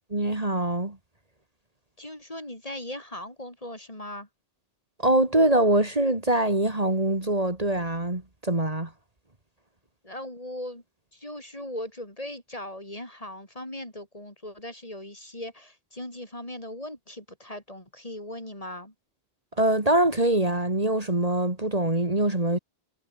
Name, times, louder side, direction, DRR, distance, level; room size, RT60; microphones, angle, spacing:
voice 1, 0.1-1.0 5.0-8.9 19.6-22.6, right 1 dB, 35° right, 2.8 m, -23 dB
voice 2, 2.0-4.3 10.0-10.8 11.1-18.9, left 1 dB, 35° left, 5.0 m, -39 dB
omnidirectional pair, 1.1 m